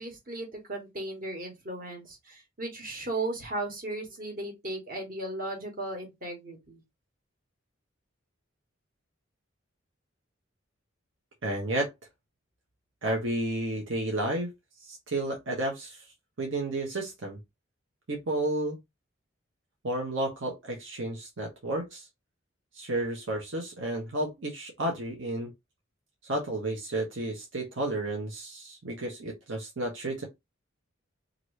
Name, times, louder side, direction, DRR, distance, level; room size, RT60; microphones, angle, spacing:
voice 1, 0.0-6.8, right 2 dB, 45° right, 1.2 m, -36 dB
voice 2, 11.4-11.9 13.0-14.5 14.9-16.0 16.4-17.4 18.1-18.8 19.8-22.1 22.7-25.5 26.3-30.3, right 1 dB, 70° right, 0.9 m, -32 dB
2.9 x 2.5 x 3.1 m
head